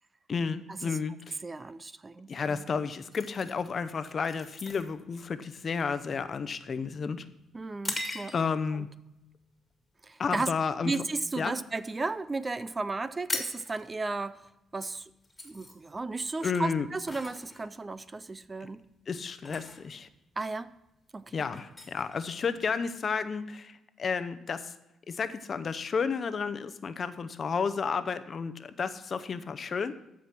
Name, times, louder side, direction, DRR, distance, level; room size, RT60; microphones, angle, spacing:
voice 1, 0.3-1.4 2.3-7.2 8.3-8.9 10.2-10.9 11.4-11.6 16.4-16.9 19.1-20.1 21.3-24.7 25.1-29.9, left 5 dB, 45° left, 11 dB, 0.7 m, -32 dB
voice 2, 1.4-2.6 7.5-8.3 8.8-8.9 10.0-10.5 10.8-14.5 14.7-15.1 15.4-18.8 20.4-20.7 21.1-21.5, right 3 dB, 25° right, 15 dB, 0.4 m, -34 dB
sound 1, 3.1-8.7 9.3-9.5 10.0-10.3 10.7-11.8 12.1-12.2 12.4-12.6 12.9-22.9, left 2 dB, 15° left, 2.0 m, -41 dB
14.0 x 5.0 x 5.9 m, 0.90 s
cardioid pair, 90°, 0 cm